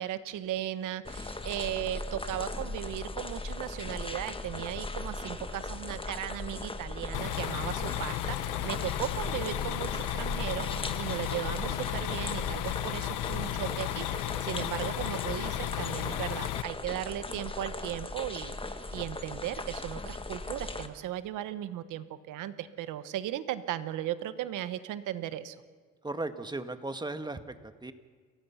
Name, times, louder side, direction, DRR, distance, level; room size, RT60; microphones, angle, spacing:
voice 1, 0.0-18.6 18.9-25.5, right 12 dB, 90° right, 13 dB, 1.1 m, -36 dB
sound 1, 1.0-20.9, left 2 dB, 20° left, 1.4 m, -38 dB
sound 2, 7.1-16.6, left 15 dB, 90° left, 0.8 m, -34 dB
voice 2, 26.0-27.9, right 2 dB, 15° right, 9 dB, 1.5 m, -36 dB
29.5 x 15.5 x 5.8 m, 1.5 s
cardioid pair, 90°, 30 cm